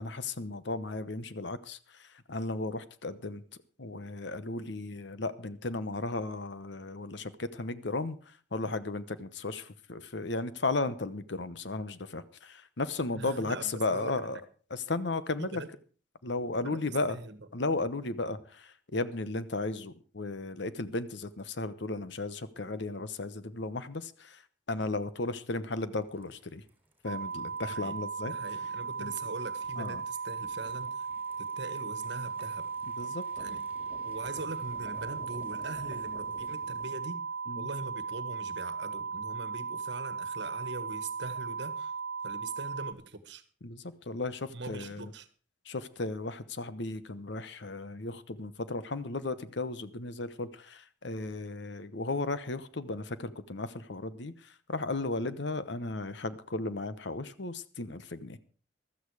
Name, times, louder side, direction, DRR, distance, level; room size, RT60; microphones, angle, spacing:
voice 1, 0.0-1.8 2.3-3.4 3.8-8.2 8.5-14.4 14.7-15.6 16.2-17.2 17.5-24.4 24.7-26.6 27.0-28.3 29.0-29.1 29.8-30.0 33.0-33.2 37.5-37.7 43.6-45.1 45.7-54.3 54.7-58.4, left 2 dB, 60° left, 1.0 m, -35 dB
voice 2, 13.1-14.3 15.4-15.7 16.6-17.4 27.7-28.0 28.3-31.1 31.4-32.7 33.4-33.6 34.0-37.2 37.5-41.9 42.2-43.4 44.5-45.3, right 3 dB, 60° right, 1.4 m, -42 dB
sound 1, 26.0-36.9, equal, 10° right, 3.6 m, -55 dB
sound 2, 27.1-42.9, right 5 dB, 90° right, 1.1 m, -37 dB
15.0 x 13.0 x 4.8 m
head